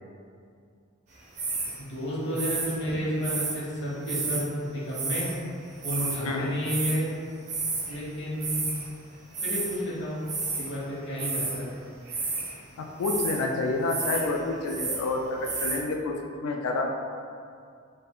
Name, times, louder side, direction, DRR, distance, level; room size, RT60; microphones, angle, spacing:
sound 1, 1.4-1.8 2.4-3.6 4.1-4.4 4.9-5.4 5.6-6.2 6.6-7.0 7.5-8.0 8.2-8.9 9.3-9.8 10.3-10.7 11.1-11.6 12.1-12.5 13.0-13.4 13.8-14.3 14.5-15.0 15.4-15.8, right 3 dB, 35° right, 0.4 m, -31 dB
voice 1, 1.8-5.3 5.8-7.1 7.9-8.7 9.4-10.2 10.5-11.7, equal, 55° left, -7 dB, 0.8 m, -31 dB
voice 2, 12.8-16.9, left 3 dB, 85° left, 4 dB, 0.3 m, -29 dB
2.3 x 2.1 x 3.5 m, 2.3 s
head